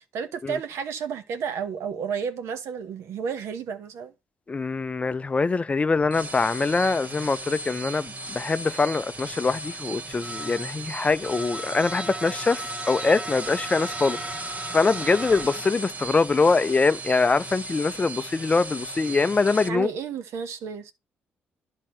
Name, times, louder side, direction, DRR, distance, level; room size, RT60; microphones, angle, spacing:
voice 1, 0.1-4.1 19.7-20.9, right 6 dB, 75° right, 1.0 m, -31 dB
voice 2, 4.5-14.2 14.7-19.9, left 4 dB, 25° left, 0.4 m, -23 dB
sound 1, 6.0-19.7, right 2 dB, 35° right, 1.2 m, -35 dB
11.0 x 3.7 x 4.3 m
supercardioid pair, 65°, 5 cm